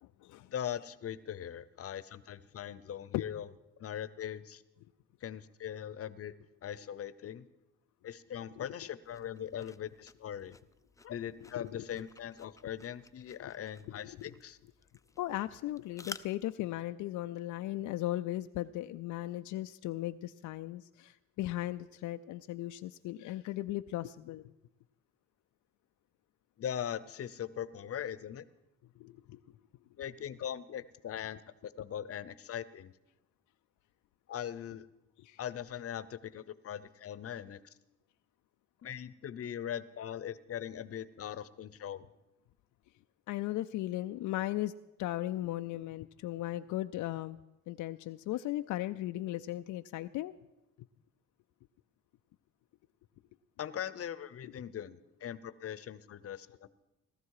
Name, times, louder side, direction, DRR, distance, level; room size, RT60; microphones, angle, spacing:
voice 1, 0.0-0.5 3.1-3.2 11.6-12.0 13.4-13.5 14.0-14.3 15.2-24.5 29.0-29.4 35.2-35.4 43.3-44.7 45.0-47.4 47.7-50.3 54.4-54.5, left 15 dB, 80° left, 9 dB, 0.5 m, -37 dB
voice 2, 0.5-3.5 3.8-4.6 5.2-6.3 6.6-7.5 8.0-10.6 11.0-14.6 26.6-28.4 30.0-32.9 34.3-34.9 35.4-37.7 38.8-42.1 53.6-56.7, left 9 dB, 50° left, 16 dB, 0.8 m, -40 dB
sound 1, 9.0-16.6, left 3 dB, 10° left, 0.5 m, -53 dB
18.0 x 13.0 x 4.8 m, 0.96 s
cardioid pair, 90°, 30 cm